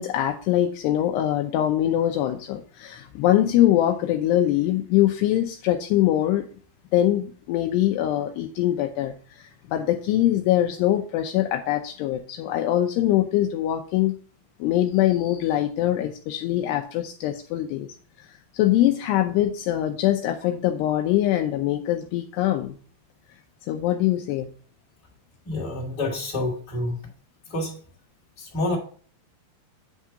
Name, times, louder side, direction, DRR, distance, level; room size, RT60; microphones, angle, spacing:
voice 1, 0.0-6.5 6.9-14.2 14.6-17.9 18.2-22.8 23.7-24.5, left 13 dB, 85° left, 5 dB, 2.4 m, -23 dB
voice 2, 25.4-27.0 27.5-27.8 28.4-28.8, left 2 dB, 30° left, -5 dB, 2.1 m, -28 dB
9.3 x 3.7 x 4.7 m, 0.43 s
omnidirectional pair, 5.3 m